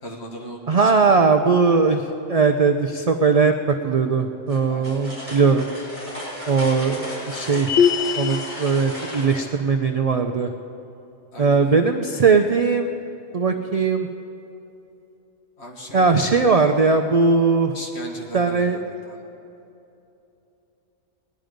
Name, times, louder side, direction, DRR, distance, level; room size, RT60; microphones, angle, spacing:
voice 1, 0.0-1.2 4.7-5.0 11.3-11.8 15.6-16.9 17.7-19.2, equal, 60° left, 0 dB, 1.9 m, -39 dB
voice 2, 0.7-3.5 3.8-5.7 6.5-7.7 8.2-10.5 11.4-12.9 13.3-14.1 15.9-17.7 18.3-18.8, right 4 dB, 55° right, 6 dB, 0.4 m, -19 dB
sound 1, 4.5-9.4, equal, 10° left, 4.3 m, -34 dB
sound 2, 7.7-8.5, left 7 dB, 75° left, 1.1 m, -20 dB
18.5 x 10.5 x 5.1 m, 2.9 s
omnidirectional pair, 1.3 m